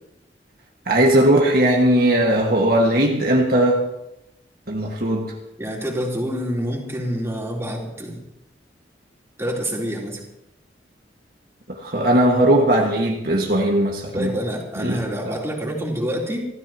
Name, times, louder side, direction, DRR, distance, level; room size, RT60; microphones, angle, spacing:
voice 1, 0.9-3.8 4.7-5.3 11.7-14.3 14.8-15.3, right 1 dB, 55° right, 0 dB, 1.8 m, -18 dB
voice 2, 5.6-8.2 9.4-10.2 14.1-16.4, equal, 15° right, -3 dB, 3.6 m, -27 dB
28.0 x 14.5 x 3.0 m, 0.85 s
head